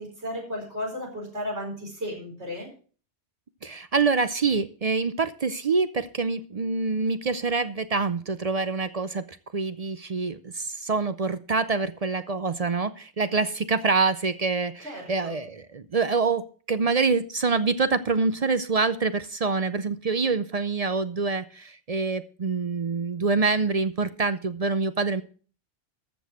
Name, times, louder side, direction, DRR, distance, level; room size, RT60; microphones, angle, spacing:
voice 1, 0.0-2.7 14.8-15.4, equal, 70° right, -1 dB, 5.0 m, -34 dB
voice 2, 3.6-9.2 9.5-16.4 16.7-25.2, right 4 dB, 45° right, 12 dB, 0.6 m, -26 dB
14.0 x 6.3 x 6.2 m, 0.40 s
omnidirectional pair, 1.2 m